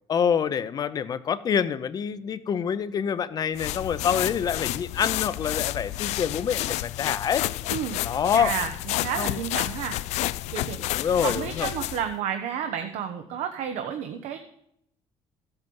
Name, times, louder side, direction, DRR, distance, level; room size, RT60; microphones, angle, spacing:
voice 1, 0.1-7.4 8.0-8.5 9.2-9.4 10.8-11.7, left 7 dB, 35° left, 15 dB, 0.6 m, -26 dB
sound 1, 3.6-12.1, left 16 dB, 80° left, 0.4 m, -30 dB
voice 2, 7.7-8.0 8.3-10.0 10.5-11.0 11.2-14.4, right 8 dB, 80° right, 6 dB, 1.0 m, -31 dB
14.0 x 8.1 x 5.3 m, 0.76 s
cardioid pair, 155°, 11 cm